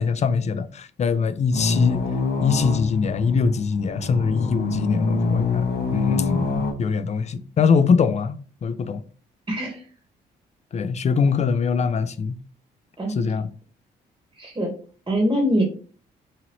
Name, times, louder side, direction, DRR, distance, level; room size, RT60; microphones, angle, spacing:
voice 1, 0.0-2.0 2.4-9.0 10.7-12.4 13.2-13.5, left 5 dB, 40° left, 0.4 m, -23 dB
sound 1, 1.5-6.7, left 4 dB, 60° left, 0.8 m, -25 dB
voice 2, 9.5-9.8 13.0-13.2 14.4-14.7 15.1-15.6, equal, 20° right, 1.1 m, -23 dB
2.8 x 2.6 x 2.9 m
supercardioid pair, 60°, 19 cm